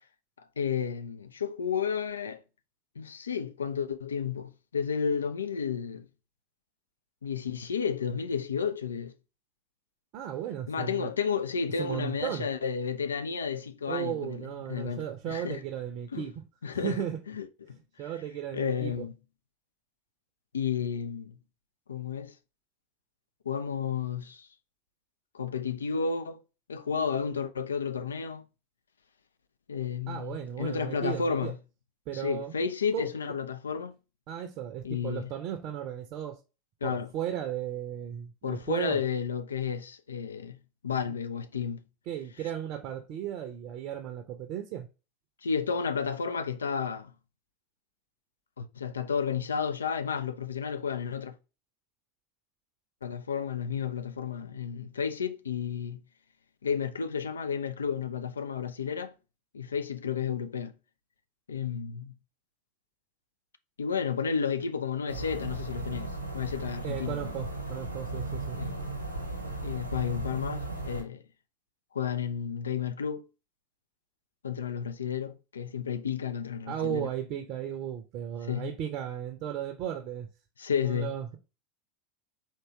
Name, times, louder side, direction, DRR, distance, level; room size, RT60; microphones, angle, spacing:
voice 1, 0.4-2.4 3.0-6.1 7.2-9.1 10.7-15.6 16.1-16.3 16.6-17.8 18.5-19.1 20.5-21.4 21.9-22.3 23.5-24.5 25.3-26.4 26.7-28.5 29.7-31.6 32.1-33.9 34.8-35.3 36.8-37.1 38.4-40.6 40.8-41.8 45.4-47.1 48.6-51.4 53.0-56.0 56.6-59.1 59.5-60.7 61.5-62.2 63.8-67.3 68.6-68.8 69.6-71.2 71.9-73.3 74.4-77.1 78.5-78.7 80.6-81.1, left 6 dB, 75° left, 0.4 m, -32 dB
voice 2, 10.1-11.1 11.8-12.5 13.9-16.3 16.8-17.2 18.0-19.1 30.1-31.5 32.1-32.6 32.9-33.1 34.3-36.4 36.8-39.0 42.1-44.9 66.8-68.6 76.7-80.3 80.8-81.4, right 10 dB, 45° right, 0.6 m, -35 dB
sound 1, 65.1-71.0, right 2 dB, 90° right, 0.9 m, -36 dB
4.6 x 2.9 x 2.8 m
figure-of-eight pair, 80°, 0 cm